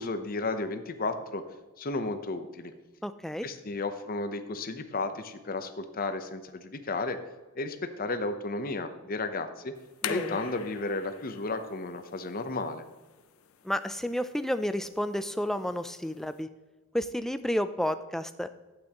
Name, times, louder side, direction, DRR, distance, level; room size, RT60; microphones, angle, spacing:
voice 1, 0.0-1.4 1.8-2.7 3.4-7.2 7.5-9.7 10.1-12.8, left 3 dB, 40° left, 8 dB, 0.7 m, -33 dB
voice 2, 3.0-3.5 10.0-10.4 13.6-16.5 16.9-18.5, equal, ahead, 10 dB, 0.3 m, -31 dB
sound 1, 9.8-16.4, left 7 dB, 70° left, 0.5 m, -43 dB
12.0 x 8.7 x 3.0 m, 1.2 s
head